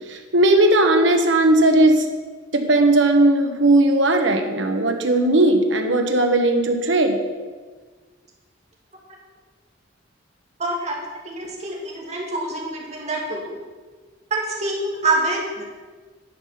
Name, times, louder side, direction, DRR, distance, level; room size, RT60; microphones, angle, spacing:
voice 1, 0.1-2.0 2.5-7.2, right 1 dB, 75° right, 5 dB, 1.2 m, -17 dB
voice 2, 10.6-11.0 11.2-13.6 14.3-15.6, right 2 dB, 35° right, -2 dB, 2.1 m, -26 dB
10.5 x 5.7 x 5.9 m, 1.4 s
head